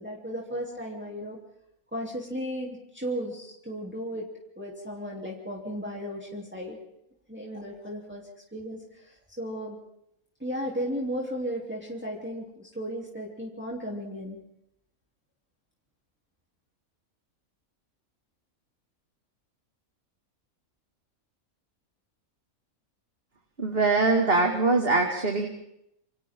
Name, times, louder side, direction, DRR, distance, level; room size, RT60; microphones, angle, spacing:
voice 1, 0.0-1.4 1.9-4.3 4.6-6.8 7.3-9.8 10.4-14.4, equal, 5° right, -3 dB, 3.4 m, -35 dB
voice 2, 23.6-25.5, right 3 dB, 40° right, 2 dB, 2.5 m, -23 dB
28.5 x 27.5 x 3.8 m, 0.79 s
omnidirectional pair, 1.5 m